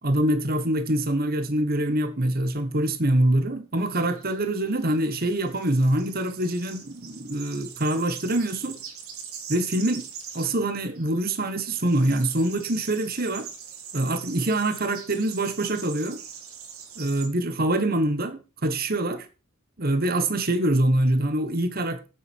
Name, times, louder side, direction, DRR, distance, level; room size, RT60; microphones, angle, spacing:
voice 1, 0.0-8.8 9.5-10.1 10.3-13.5 13.9-16.2 17.0-19.3 19.8-22.1, right 1 dB, 45° right, 1.4 m, -25 dB
sound 1, 3.8-17.3, right 7 dB, 80° right, 3.2 m, -42 dB
9.0 x 8.0 x 6.2 m
head